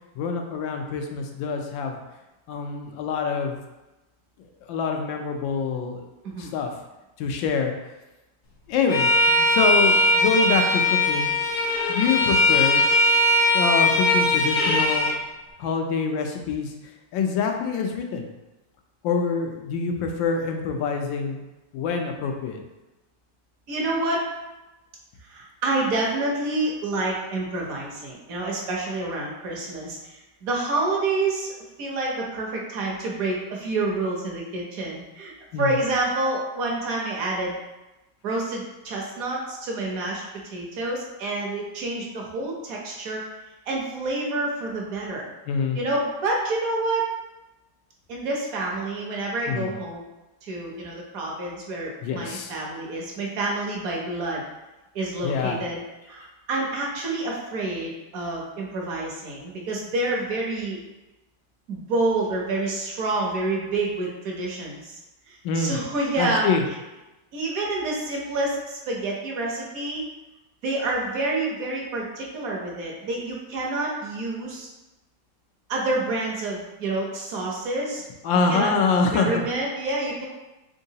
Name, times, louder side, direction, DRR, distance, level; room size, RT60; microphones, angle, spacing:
voice 1, 0.2-2.0 2.5-3.6 4.7-6.1 6.4-6.7 7.2-7.7 8.7-11.3 11.9-12.8 13.5-15.1 15.6-16.7 17.1-18.3 19.0-21.4 21.7-22.6 35.5-35.8 45.5-45.8 49.5-49.7 52.0-52.5 55.2-55.6 65.4-65.8 66.2-66.6 78.2-79.4, left 5 dB, 85° left, 3 dB, 1.3 m, -25 dB
Bowed string instrument, 8.9-15.2, left 1 dB, 60° left, 0.7 m, -20 dB
voice 2, 23.7-24.4 25.3-31.5 31.8-35.3 35.6-37.6 38.2-40.2 40.5-43.2 43.7-45.3 45.7-47.1 48.1-50.1 50.4-54.4 54.9-60.8 61.7-65.0 65.3-66.5 67.3-70.1 70.6-74.7 75.7-78.0 78.5-78.7 79.1-80.3, right 2 dB, 60° right, -2 dB, 1.0 m, -28 dB
3.7 x 3.6 x 2.7 m, 1.0 s
omnidirectional pair, 2.0 m